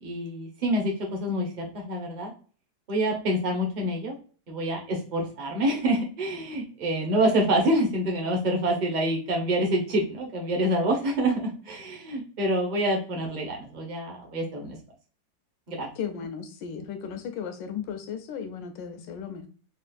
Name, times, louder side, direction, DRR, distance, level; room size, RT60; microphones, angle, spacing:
voice 1, 0.0-2.3 2.9-4.1 4.5-14.8 15.7-15.9, right 1 dB, 45° right, 0 dB, 0.6 m, -27 dB
voice 2, 16.0-19.5, left 7 dB, 75° left, 7 dB, 1.3 m, -35 dB
4.2 x 2.4 x 2.4 m, 0.39 s
omnidirectional pair, 2.0 m